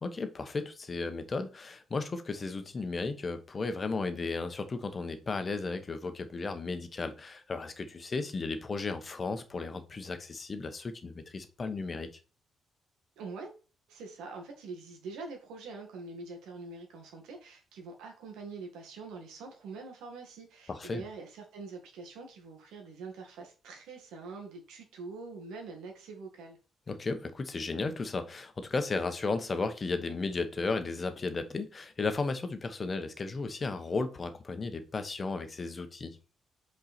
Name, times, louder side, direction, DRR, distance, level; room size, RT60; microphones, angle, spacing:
voice 1, 0.0-12.2 20.7-21.0 26.9-36.2, left 3 dB, 35° left, 1.0 m, -34 dB
voice 2, 13.2-13.5 13.9-26.6, right 4 dB, 90° right, 1.9 m, -44 dB
5.4 x 4.6 x 4.3 m
cardioid pair, 90°, 0 cm